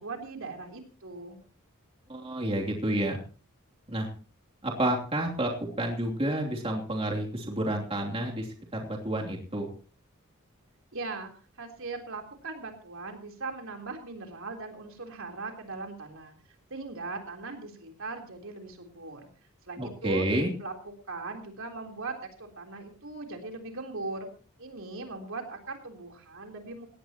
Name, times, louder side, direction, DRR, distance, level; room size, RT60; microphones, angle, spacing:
voice 1, 0.0-1.4 10.9-11.3 11.6-16.3 16.7-19.3 19.7-20.3 20.6-24.3 24.6-26.9, right 3 dB, 65° right, 4 dB, 3.7 m, -39 dB
voice 2, 2.1-3.2 3.9-4.1 4.6-5.5 5.8-8.5 8.7-9.7 19.8-20.5, right 1 dB, 25° right, 0 dB, 3.0 m, -29 dB
19.0 x 17.0 x 3.0 m, 0.39 s
head